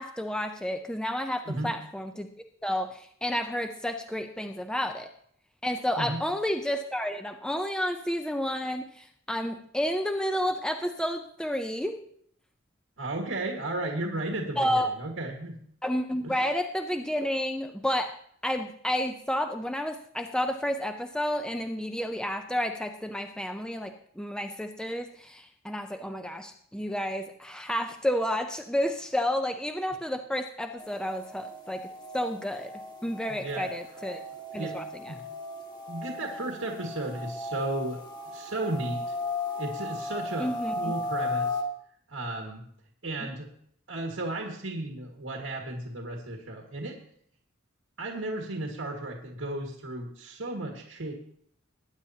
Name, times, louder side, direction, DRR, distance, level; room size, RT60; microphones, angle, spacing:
voice 1, 0.0-2.3 2.6-5.1 5.6-12.0 14.6-14.9 15.8-18.2 18.4-32.7 33.0-34.2 34.5-35.1 40.4-40.9 43.2-43.3, equal, 5° left, 6 dB, 0.5 m, -31 dB
voice 2, 13.0-15.5 16.2-16.5 33.3-33.7 34.5-34.8 35.1-35.2 35.9-39.2 39.6-41.6 42.1-42.7 43.0-43.5 43.9-47.0 48.0-51.1, right 2 dB, 85° right, 1 dB, 1.8 m, -34 dB
sound 1, 30.8-41.6, left 2 dB, 20° left, 1.3 m, -36 dB
20.0 x 9.7 x 2.8 m, 0.64 s
head